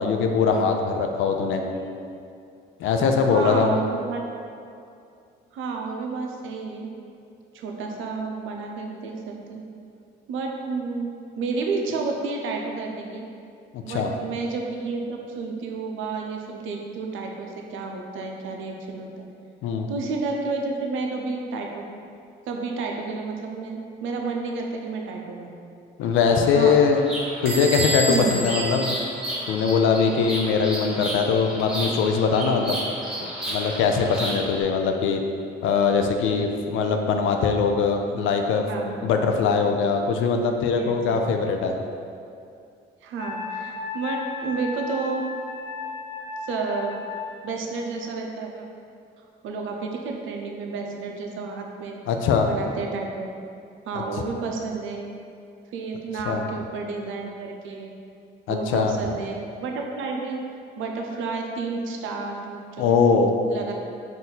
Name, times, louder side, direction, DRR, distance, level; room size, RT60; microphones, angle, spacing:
voice 1, 0.0-1.6 2.8-3.7 13.7-14.1 19.6-19.9 26.0-27.0 27.4-28.9 29.5-32.8 33.5-35.2 35.6-38.6 39.0-41.7 52.1-52.5 53.9-54.0 56.3-56.5 58.5-58.9 62.8-63.3, left 5 dB, 80° left, 4 dB, 0.4 m, -21 dB
voice 2, 1.6-2.0 3.3-4.2 5.5-6.9 7.5-9.6 10.3-13.3 13.8-19.3 19.9-21.8 22.5-25.5 26.5-26.8 28.1-28.4 38.7-38.9 40.7-41.3 43.0-45.3 46.4-47.0 47.4-48.7 49.4-52.0 52.4-53.3 53.9-55.1 55.7-57.9 58.5-60.4 60.8-62.9 63.5-63.7, right 4 dB, 85° right, 1 dB, 0.5 m, -31 dB
Bird vocalization bird call bird song, 26.1-34.6, right 1 dB, 5° right, 0.9 m, -33 dB
Bell / Door, 27.5-30.0, right 1 dB, 50° right, 1.2 m, -30 dB
Wind instrument woodwind instrument, 43.2-47.4, left 4 dB, 25° left, 0.5 m, -34 dB
4.4 x 2.6 x 3.8 m, 2.5 s
cardioid pair, 90°, 20 cm